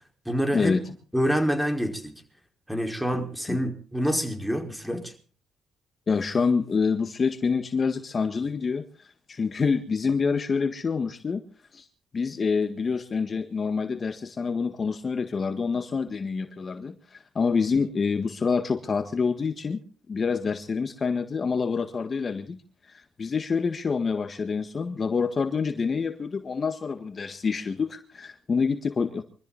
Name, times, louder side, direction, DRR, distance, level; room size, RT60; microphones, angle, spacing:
voice 1, 0.2-0.8 1.1-2.1 2.7-5.1, equal, ahead, 5.0 m, -27 dB
voice 2, 6.1-11.4 11.7-11.9 12.1-19.8 20.1-22.6 22.9-29.2, left 5 dB, 40° left, 1.7 m, -27 dB
24.5 x 14.0 x 4.2 m
cardioid pair, 90°, 0 cm